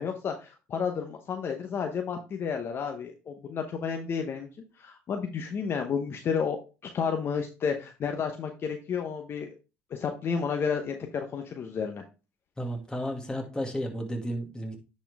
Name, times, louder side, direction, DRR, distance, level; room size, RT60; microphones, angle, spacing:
voice 1, 0.0-4.5 4.8-9.5 9.9-12.0, left 6 dB, 45° left, 4 dB, 0.9 m, -31 dB
voice 2, 12.6-14.8, equal, 15° left, 2 dB, 2.2 m, -33 dB
10.0 x 4.3 x 3.5 m, 0.32 s
supercardioid pair, 85°, 5 cm